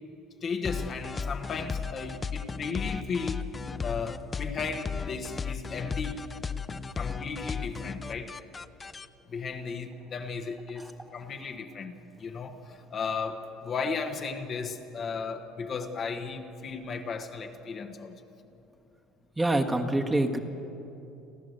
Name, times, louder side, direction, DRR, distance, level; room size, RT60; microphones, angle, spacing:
voice 1, 0.4-3.5 3.8-6.2 6.9-8.3 9.3-18.2, left 5 dB, 40° left, 5 dB, 1.3 m, -35 dB
sound 1, 0.6-9.1, left 5 dB, 20° left, 0.5 m, -35 dB
voice 2, 19.4-20.4, right 1 dB, 10° right, 3 dB, 1.4 m, -25 dB
30.0 x 11.0 x 7.9 m, 2.9 s
cardioid pair, 125°, 0 cm